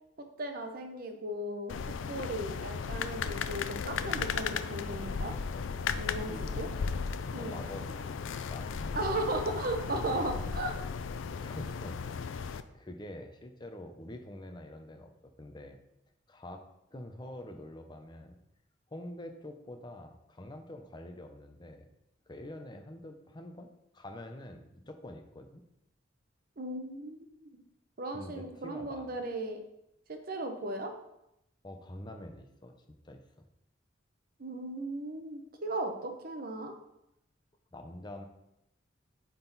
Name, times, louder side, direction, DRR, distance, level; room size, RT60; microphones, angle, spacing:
voice 1, 0.2-1.7 2.1-5.3 5.9-6.7 7.3-7.6 8.9-10.7 26.6-27.6 28.0-29.6 30.1-30.9 34.4-36.7, right 1 dB, 50° right, 5 dB, 0.9 m, -36 dB
sound 1, 1.7-12.6, left 5 dB, 85° left, 0.4 m, -35 dB
voice 2, 6.3-6.8 7.2-8.2 8.5-9.0 10.0-10.2 11.4-12.2 12.7-15.1 15.4-15.8 16.3-16.6 16.9-18.4 18.9-21.9 22.3-23.7 23.9-25.6 28.1-29.1 31.6-32.7 33.0-33.5 37.7-38.3, left 1 dB, 25° left, 5 dB, 0.7 m, -46 dB
8.7 x 3.9 x 4.0 m, 0.84 s
head